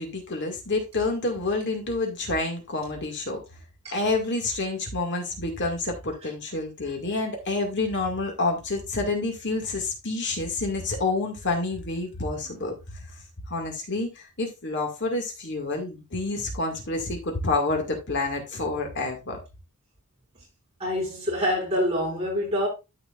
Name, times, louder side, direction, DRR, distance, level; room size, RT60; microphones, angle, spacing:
voice 1, 0.0-3.4 3.9-12.7 13.1-13.2 13.5-19.4, left 2 dB, 50° left, 2.1 m, -28 dB
voice 2, 20.8-22.7, equal, 30° right, 5.6 m, -26 dB
13.0 x 5.0 x 2.5 m
head